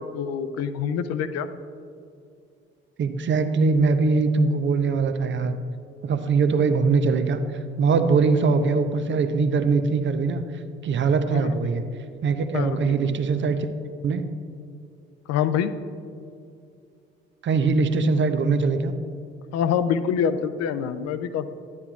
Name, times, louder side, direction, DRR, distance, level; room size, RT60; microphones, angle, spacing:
voice 1, 0.0-1.5 11.3-11.8 12.5-13.1 15.3-15.7 19.5-21.5, left 8 dB, 60° left, 11 dB, 0.6 m, -26 dB
voice 2, 3.0-5.6 6.0-7.4 7.8-10.4 10.8-11.8 12.2-13.7 14.0-14.2 17.4-18.9, right 4 dB, 40° right, 9 dB, 0.7 m, -22 dB
9.8 x 9.6 x 2.4 m, 2.5 s
hypercardioid pair, 45°, 30 cm